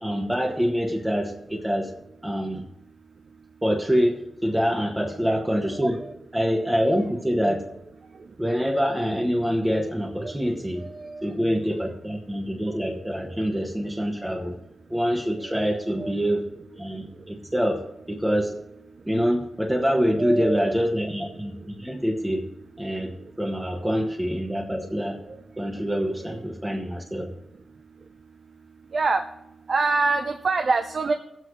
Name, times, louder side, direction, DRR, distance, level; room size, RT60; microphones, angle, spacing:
voice 1, 0.0-1.9 2.2-2.6 3.6-6.0 6.3-7.7 8.4-10.8 11.2-14.6 14.9-16.4 16.8-18.5 19.1-22.4 22.8-25.2 25.6-27.3, equal, 5° right, -1 dB, 1.1 m, -25 dB
voice 2, 19.8-20.8 28.9-29.2 29.7-31.1, right 3 dB, 60° right, 6 dB, 0.6 m, -25 dB
19.5 x 8.0 x 3.1 m, 0.86 s
wide cardioid pair, 85°, 0 cm